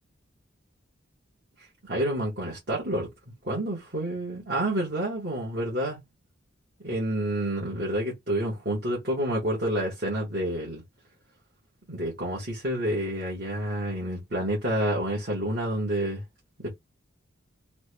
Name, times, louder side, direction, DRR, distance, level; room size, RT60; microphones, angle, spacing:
voice 1, 1.8-3.1 3.4-6.0 6.8-10.8 11.9-16.2 16.6-16.8, right 1 dB, 50° right, 1.2 m, -29 dB
3.2 x 2.2 x 3.2 m
head